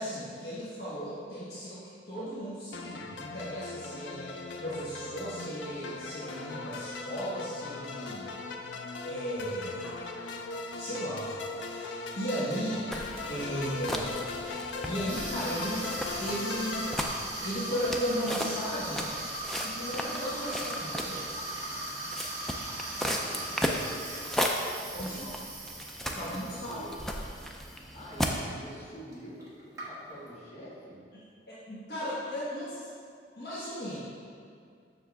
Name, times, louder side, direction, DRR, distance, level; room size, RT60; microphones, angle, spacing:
voice 1, 0.0-8.3 9.1-10.0 10.8-12.9 13.3-14.1 14.8-15.9 16.2-16.8 17.4-19.1 19.6-21.3 24.9-25.3 26.2-26.8 31.1-32.9 33.4-34.0, equal, 55° left, -10 dB, 1.4 m, -36 dB
sound 1, 2.7-17.0, left 3 dB, 80° left, 0.5 m, -39 dB
sound 2, 12.9-28.5, equal, ahead, 0.4 m, -36 dB
Water tap faucet / Sink (filling or washing), 15.1-27.8 28.1-28.4 29.1-29.2 29.4-30.3, right 2 dB, 20° right, 1.3 m, -39 dB
voice 2, 23.0-23.7 24.9-25.3 26.0-27.0 27.9-31.0, equal, 35° left, -8 dB, 1.9 m, -47 dB
7.1 x 6.3 x 3.5 m, 2.3 s
head